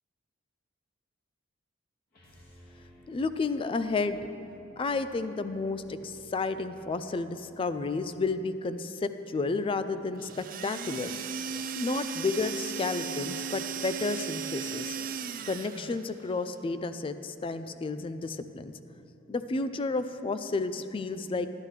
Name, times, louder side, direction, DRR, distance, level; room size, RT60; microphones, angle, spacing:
sound 1, 2.1-8.3, equal, 50° left, 1.9 m, -56 dB
voice 1, 3.1-4.2 4.8-11.1 11.8-15.0 15.5-18.7 19.3-21.5, left 3 dB, 25° left, 11 dB, 0.3 m, -31 dB
sound 2, 10.2-16.1, right 6 dB, 45° right, 0.4 m, -36 dB
11.5 x 11.5 x 3.2 m, 2.9 s
head